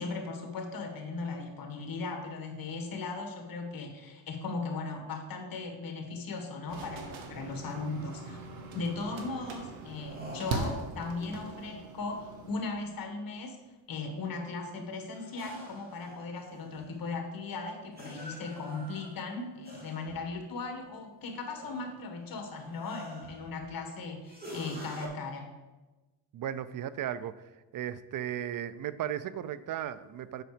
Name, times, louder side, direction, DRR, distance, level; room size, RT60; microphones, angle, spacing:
voice 1, 0.0-8.5 8.7-13.6 13.9-25.5, left 3 dB, 45° left, 3 dB, 1.7 m, -38 dB
sound 1, 6.7-12.6, right 3 dB, 75° right, 1.3 m, -40 dB
sound 2, 9.9-11.0 15.1-17.0 18.0-20.3 21.3-22.1 22.5-23.7 24.3-25.1, equal, 20° right, 2.2 m, -47 dB
voice 2, 26.3-27.4 27.7-30.4, right 10 dB, 45° right, 16 dB, 0.4 m, -35 dB
7.8 x 5.8 x 5.0 m, 1.2 s
cardioid pair, 105°, 46 cm